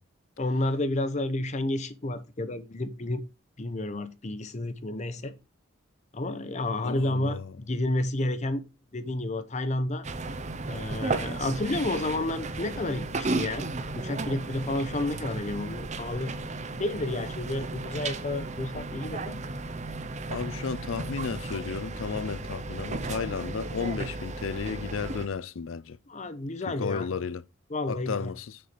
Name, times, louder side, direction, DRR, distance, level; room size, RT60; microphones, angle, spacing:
voice 1, 0.4-3.2 3.6-5.3 6.1-8.6 8.9-10.1 10.7-13.7 13.9-16.3 16.8-19.4 26.1-27.1 27.7-28.3, left 1 dB, 35° left, 0.7 m, -30 dB
voice 2, 6.8-7.5 20.3-26.0 26.7-27.4 27.9-28.6, left 5 dB, 75° left, 0.5 m, -33 dB
sound 1, 10.0-25.3, right 3 dB, 35° right, 0.7 m, -34 dB
6.8 x 5.7 x 5.0 m
head